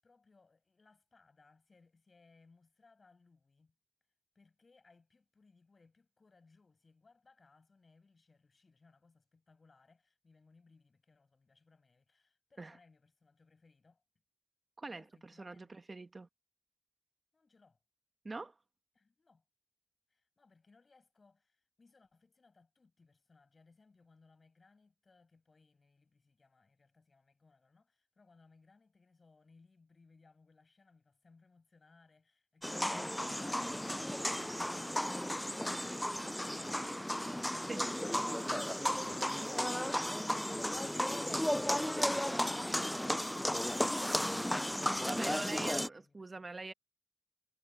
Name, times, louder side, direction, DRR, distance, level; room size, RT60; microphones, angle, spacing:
voice 1, 0.0-3.7 4.3-14.0 14.9-15.8 17.3-17.8 18.9-19.4 20.1-38.0 45.1-46.6, left 4 dB, 60° left, 8.0 m, -66 dB
voice 2, 14.8-16.3 18.2-18.5 37.7-37.9 43.8-43.9 45.1-46.7, right 3 dB, 50° right, 1.3 m, -44 dB
sound 1, 32.6-45.9, equal, 10° left, 0.3 m, -34 dB
wide cardioid pair, 70°, 0 cm